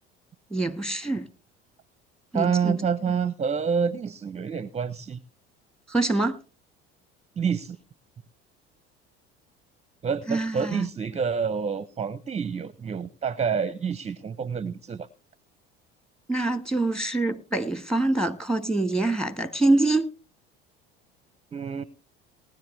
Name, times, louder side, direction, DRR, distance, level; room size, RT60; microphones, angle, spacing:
voice 1, 0.5-1.3 2.3-2.8 5.9-6.4 10.3-10.9 16.3-20.1, right 2 dB, ahead, 1.3 m, -25 dB
voice 2, 2.3-5.2 7.4-7.8 10.0-15.1 21.5-21.8, right 6 dB, 20° right, 0.6 m, -28 dB
19.0 x 10.5 x 3.2 m
hypercardioid pair, 70°, 31 cm